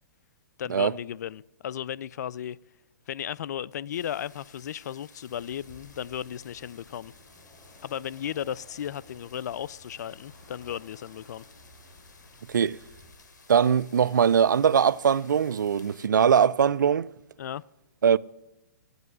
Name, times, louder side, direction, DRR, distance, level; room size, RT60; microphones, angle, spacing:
voice 1, 0.6-2.6 3.1-7.1 7.8-11.4 17.4-17.6, left 10 dB, 65° left, 0.4 m, -35 dB
sound 1, 3.9-16.1, left 4 dB, 85° left, 1.4 m, -56 dB
sound 2, 5.2-13.1, left 1 dB, 35° left, 5.0 m, -55 dB
voice 2, 12.5-12.8 13.5-17.1 18.0-18.2, right 7 dB, 90° right, 0.4 m, -21 dB
10.5 x 8.0 x 9.4 m
hypercardioid pair, 135°, 10 cm